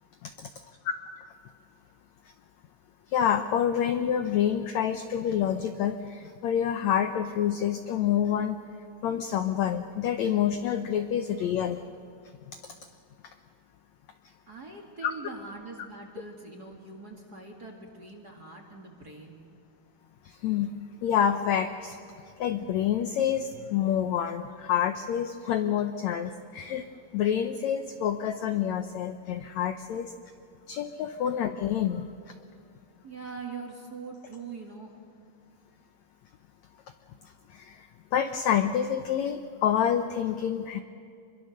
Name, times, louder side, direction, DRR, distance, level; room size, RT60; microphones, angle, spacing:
voice 1, 3.1-8.6 9.0-11.8 15.0-15.1 20.2-20.7 21.0-22.0 22.4-26.9 27.1-30.1 30.7-32.1 37.5-40.8, left 9 dB, 80° left, 8 dB, 1.6 m, -27 dB
voice 2, 14.5-19.5 33.0-34.9, right 4 dB, 35° right, 2 dB, 1.9 m, -42 dB
26.5 x 22.5 x 6.5 m, 2.5 s
omnidirectional pair, 4.1 m